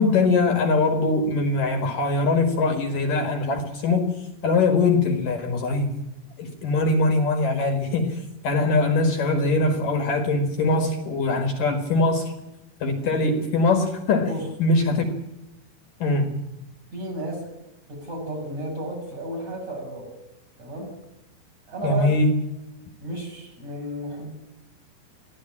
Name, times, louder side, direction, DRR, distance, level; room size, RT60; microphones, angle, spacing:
voice 1, 0.0-6.0 6.4-12.3 12.8-14.3 14.6-15.0 16.0-16.4 21.8-22.4, left 3 dB, 55° left, 6 dB, 2.6 m, -22 dB
voice 2, 16.9-17.5 17.9-20.2 20.6-21.0 21.7-22.1 23.0-24.3, right 1 dB, 30° right, 4 dB, 7.3 m, -33 dB
23.5 x 15.0 x 8.7 m, 0.95 s
omnidirectional pair, 5.8 m